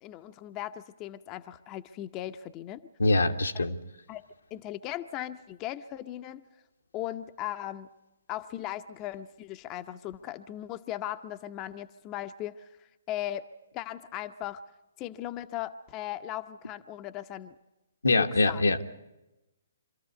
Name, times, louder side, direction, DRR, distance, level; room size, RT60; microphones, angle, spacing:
voice 1, 0.0-2.8 3.5-3.6 4.1-4.2 4.5-6.4 6.9-7.9 8.3-12.7 13.1-13.5 13.7-14.6 15.0-17.5 18.1-18.6, left 13 dB, 25° left, 9 dB, 0.7 m, -38 dB
voice 2, 3.0-3.8 18.0-18.8, left 2 dB, 85° left, 5 dB, 1.3 m, -24 dB
25.5 x 13.5 x 9.4 m, 0.96 s
figure-of-eight pair, 135°, 0 cm